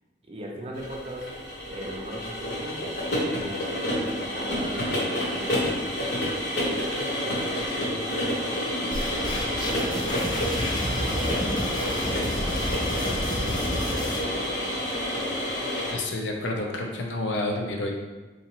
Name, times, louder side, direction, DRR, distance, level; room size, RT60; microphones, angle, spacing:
voice 1, 0.3-1.3 1.7-5.9 6.5-8.7 9.2-15.5, equal, 30° right, -1 dB, 0.5 m, -39 dB
sound 1, 0.8-15.9, left 1 dB, 65° left, 1.0 m, -29 dB
sound 2, 8.9-14.2, left 1 dB, 25° left, 0.4 m, -30 dB
voice 2, 15.9-17.9, left 2 dB, 80° left, 1 dB, 0.5 m, -29 dB
3.9 x 2.7 x 2.9 m, 1.2 s
head